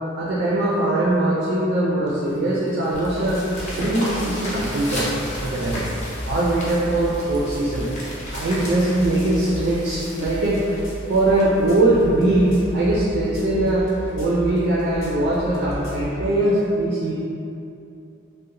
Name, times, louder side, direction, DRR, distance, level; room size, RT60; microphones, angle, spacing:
voice 1, 0.2-3.5 3.8-5.1 5.4-5.8 6.3-7.9 8.3-10.6 11.1-13.9 14.1-17.1, right 1 dB, 55° right, -6 dB, 0.4 m, -21 dB
sound 1, 2.1-12.5 13.1-13.2 13.7-13.8 14.1-14.2 14.6-14.8 15.7-15.8, left 1 dB, 35° left, 0.6 m, -35 dB
sound 2, 2.9-16.2, right 1 dB, 90° left, 1.1 m, -34 dB
2.8 x 2.0 x 2.5 m, 2.7 s
head